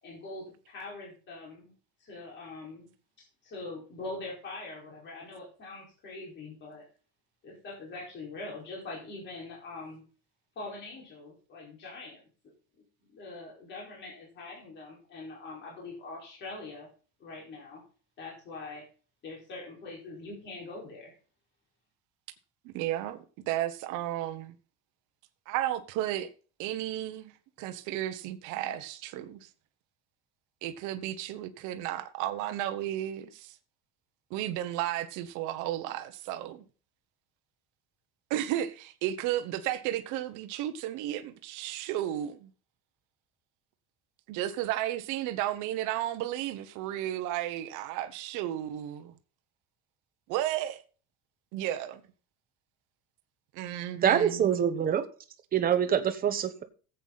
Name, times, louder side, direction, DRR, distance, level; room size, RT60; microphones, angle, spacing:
voice 1, 0.0-1.7 2.0-2.9 3.4-6.9 7.4-10.0 10.6-12.2 13.1-16.9 17.2-17.8 18.2-18.9 19.2-21.1, left 3 dB, 35° left, 4.7 m, -43 dB
voice 2, 22.6-24.5 25.5-26.3 26.6-27.3 27.6-29.5 30.6-33.6 34.3-36.6 38.3-42.5 44.3-49.1 50.3-50.8 51.5-52.0 53.5-54.4, right 13 dB, 70° right, 1.1 m, -33 dB
voice 3, 54.0-55.0 55.5-56.6, right 9 dB, 30° right, 1.0 m, -25 dB
14.5 x 8.2 x 4.0 m
cardioid pair, 175°, 32 cm